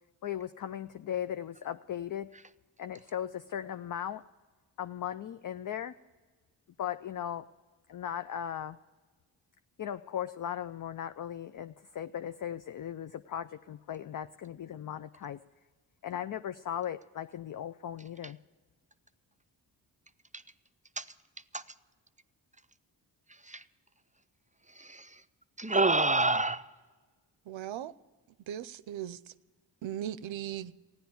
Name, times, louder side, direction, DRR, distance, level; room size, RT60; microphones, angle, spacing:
voice 1, 0.2-2.3 2.8-4.2 4.8-5.9 6.8-7.4 7.9-8.8 9.8-15.4 16.0-18.4, left 10 dB, 45° left, 11 dB, 0.5 m, -37 dB
voice 2, 24.8-25.2 25.6-26.7, right 2 dB, 15° right, 12 dB, 0.5 m, -28 dB
voice 3, 27.5-27.9 28.5-29.2 29.8-30.7, right 11 dB, 75° right, 17 dB, 0.6 m, -38 dB
15.0 x 10.5 x 7.0 m, 1.4 s
cardioid pair, 40°, 47 cm